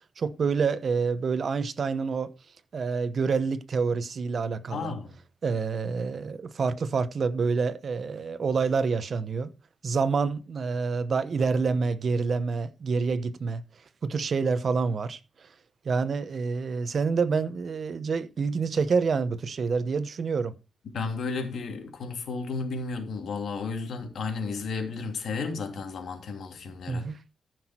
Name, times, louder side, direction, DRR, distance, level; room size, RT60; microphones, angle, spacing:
voice 1, 0.2-2.3 2.7-4.9 5.4-9.5 9.8-13.6 14.0-15.2 15.8-20.6 26.9-27.2, right 5 dB, 55° right, 0.8 m, -27 dB
voice 2, 4.7-5.1 20.9-27.1, left 4 dB, 75° left, 2.8 m, -33 dB
14.0 x 6.1 x 4.4 m
cardioid pair, 110°, 0 cm